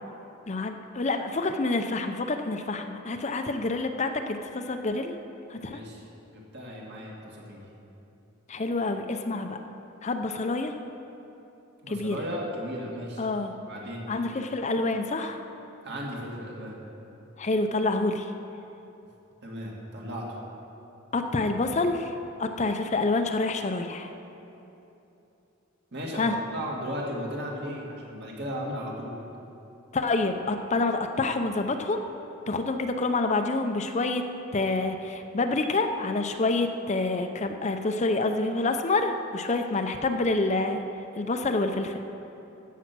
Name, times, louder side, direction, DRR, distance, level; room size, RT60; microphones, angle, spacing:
voice 1, 0.5-5.1 5.5-5.8 8.5-9.6 10.0-10.7 11.9-12.2 13.2-13.5 14.1-15.4 17.4-18.3 21.1-22.1 22.4-24.1 26.1-26.4 29.9-32.0 32.5-34.3 34.5-40.8 41.2-42.0, left 3 dB, 30° left, 6 dB, 0.6 m, -27 dB
voice 2, 5.6-7.6 11.8-13.3 13.7-14.1 15.8-16.8 19.4-20.4 25.9-29.2, equal, 50° right, -2 dB, 2.3 m, -36 dB
14.0 x 8.3 x 6.1 m, 2.9 s
head